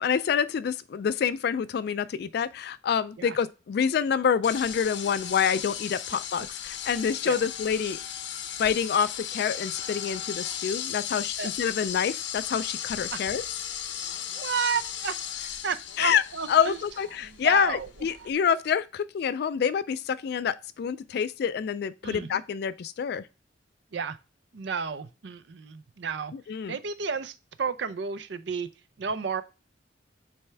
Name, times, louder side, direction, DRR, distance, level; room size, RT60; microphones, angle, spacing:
voice 1, 0.0-8.0 8.6-13.4 16.0-16.2 16.5-23.3 26.5-26.8, left 7 dB, 55° left, 0.3 m, -27 dB
sound 1, 4.4-18.3, left 9 dB, 80° left, 0.7 m, -36 dB
voice 2, 14.3-16.8 17.2-17.9 18.2-18.3 22.0-22.4 23.9-24.2 24.5-26.3 26.7-28.7 29.0-29.4, right 6 dB, 65° right, 0.5 m, -32 dB
8.6 x 3.5 x 3.3 m
head